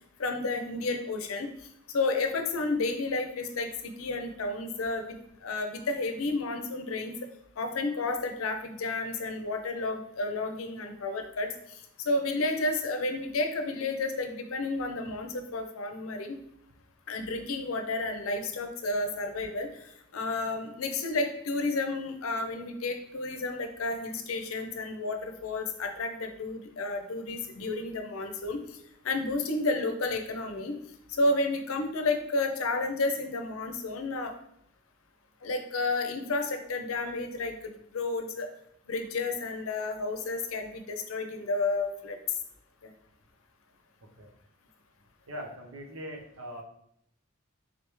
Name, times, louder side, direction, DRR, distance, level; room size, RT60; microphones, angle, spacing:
voice 1, 0.2-1.5 1.9-7.2 7.6-16.4 17.1-28.8 29.0-30.8 31.1-34.3 35.4-38.5 38.9-42.2, left 2 dB, 85° left, 6 dB, 0.6 m, -31 dB
voice 2, 45.3-46.6, equal, 90° right, 1 dB, 0.8 m, -41 dB
3.8 x 3.3 x 3.1 m, 0.73 s
head